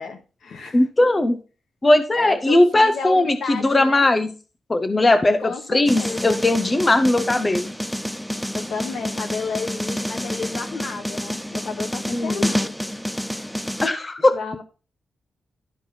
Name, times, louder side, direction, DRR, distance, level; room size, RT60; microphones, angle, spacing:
voice 1, 0.0-0.9 2.1-4.1 5.4-6.4 8.5-12.8 13.3-13.4 14.3-14.6, left 4 dB, 75° left, 5 dB, 1.7 m, -32 dB
voice 2, 0.7-1.4 1.8-4.3 4.7-7.7 12.1-12.5 13.8-14.3, left 2 dB, 25° left, 10 dB, 0.7 m, -18 dB
sound 1, 5.9-13.9, equal, 5° left, 0.4 m, -28 dB
12.0 x 4.6 x 4.3 m, 0.35 s
cardioid pair, 95°, 0 cm